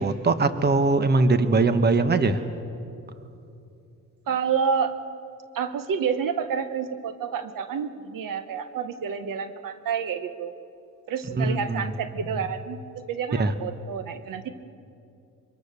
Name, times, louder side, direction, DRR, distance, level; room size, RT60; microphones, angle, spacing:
voice 1, 0.0-2.4 11.3-11.8 13.3-13.5, right 3 dB, 30° right, 10 dB, 1.2 m, -21 dB
voice 2, 4.3-4.9 5.5-10.5 11.1-12.8 13.1-14.5, right 6 dB, 70° right, 10 dB, 1.3 m, -29 dB
24.5 x 24.0 x 6.8 m, 2.6 s
cardioid pair, 115°, 34 cm